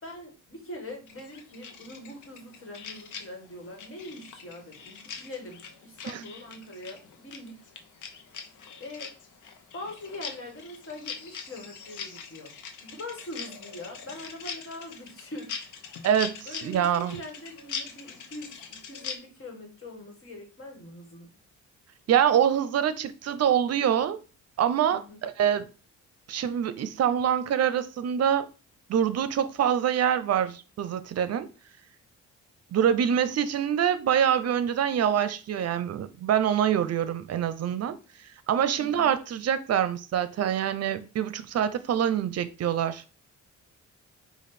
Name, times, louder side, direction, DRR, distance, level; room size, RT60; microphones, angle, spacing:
voice 1, 0.0-7.6 8.8-9.1 9.7-12.6 12.8-15.6 16.4-21.3 24.9-25.2 38.8-39.1, left 1 dB, 45° left, 1.8 m, -42 dB
sound 1, 1.1-19.1, left 6 dB, 80° left, 0.9 m, -42 dB
voice 2, 16.0-17.2 22.1-24.2 24.6-25.7 26.3-28.5 28.9-31.5 32.7-38.0 38.5-43.0, right 9 dB, 55° right, 0.6 m, -25 dB
5.1 x 2.5 x 4.1 m
cardioid pair, 100°, 30 cm